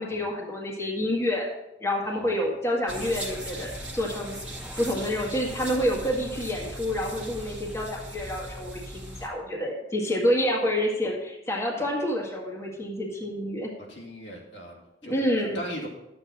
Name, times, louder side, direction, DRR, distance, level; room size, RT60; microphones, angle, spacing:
voice 1, 0.0-1.5 1.8-4.4 4.8-13.7 15.0-15.6, equal, 15° left, -2 dB, 1.8 m, -28 dB
voice 2, 2.0-2.4 13.9-15.1 15.5-15.9, equal, 80° left, -2 dB, 2.7 m, -39 dB
sound 1, 2.9-9.3, right 1 dB, 5° right, 1.9 m, -38 dB
11.5 x 7.8 x 4.2 m, 0.93 s
head